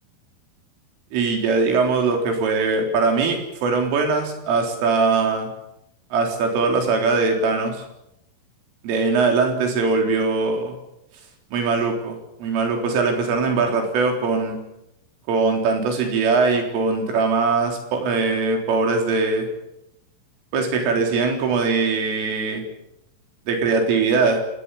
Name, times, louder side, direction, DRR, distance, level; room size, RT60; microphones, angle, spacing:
voice 1, 1.1-5.5 6.1-7.8 8.8-10.8 11.5-14.6 15.3-19.5 20.5-22.6 23.5-24.4, right 4 dB, 85° right, 3 dB, 6.4 m, -21 dB
28.5 x 19.0 x 7.2 m, 0.84 s
omnidirectional pair, 5.6 m